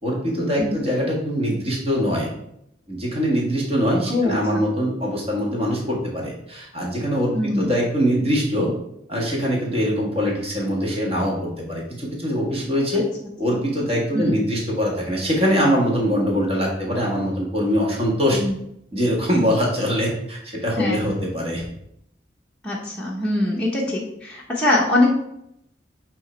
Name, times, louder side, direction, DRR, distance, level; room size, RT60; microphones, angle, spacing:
voice 1, 0.0-2.3 2.9-8.7 9.1-13.1 13.4-18.4 18.9-21.6, equal, 35° right, -2 dB, 1.7 m, -23 dB
voice 2, 4.1-4.6 7.3-7.7 14.1-14.3 18.3-18.6 20.8-21.2 22.6-25.1, left 1 dB, 5° left, -5 dB, 0.8 m, -23 dB
7.8 x 2.9 x 4.3 m, 0.76 s
head